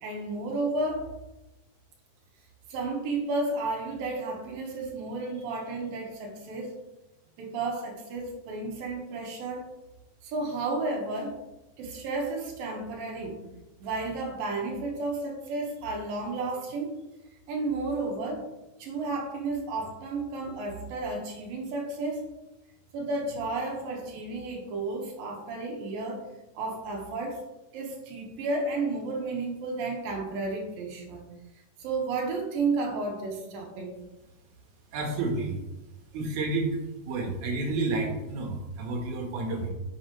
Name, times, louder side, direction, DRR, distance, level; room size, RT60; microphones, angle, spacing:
voice 1, 0.0-1.1 2.7-6.8 7.4-9.7 10.2-11.4 11.8-13.4 13.8-16.9 17.5-18.4 18.8-22.3 22.9-26.3 26.6-27.4 27.7-31.3 31.8-33.9, right 3 dB, 90° right, 1 dB, 3.2 m, -32 dB
voice 2, 34.9-35.6 36.1-36.7 37.1-39.7, right 3 dB, 65° right, 2 dB, 2.6 m, -30 dB
8.6 x 7.3 x 3.1 m, 0.99 s
omnidirectional pair, 3.9 m